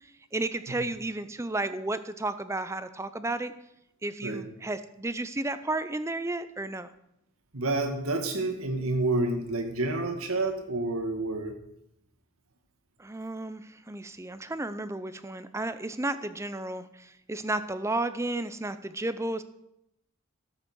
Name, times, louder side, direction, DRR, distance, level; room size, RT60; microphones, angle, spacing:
voice 1, 0.3-3.5 4.0-6.9 13.0-19.4, right 2 dB, 15° right, 12 dB, 0.6 m, -33 dB
voice 2, 7.5-11.5, right 2 dB, 80° right, 5 dB, 2.1 m, -29 dB
13.5 x 8.0 x 6.2 m, 0.81 s
head